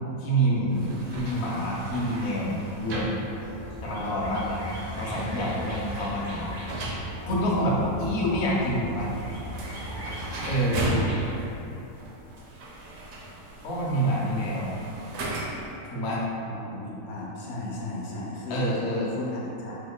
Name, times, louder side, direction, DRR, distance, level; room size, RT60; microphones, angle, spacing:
voice 1, 0.2-3.1 3.8-4.7 5.0-6.5 7.3-9.1 10.4-11.0 13.6-14.7 15.9-16.3 18.5-19.1, right 1 dB, 60° left, -5 dB, 0.8 m, -27 dB
sound 1, 0.7-15.8, right 2 dB, 75° right, 1.0 m, -36 dB
sound 2, 3.4-11.3, right 1 dB, 25° right, 0.4 m, -38 dB
voice 2, 14.1-14.7 16.4-18.6 19.1-19.8, left 2 dB, 85° left, -4 dB, 1.1 m, -36 dB
3.2 x 2.2 x 3.5 m, 2.9 s
omnidirectional pair, 1.5 m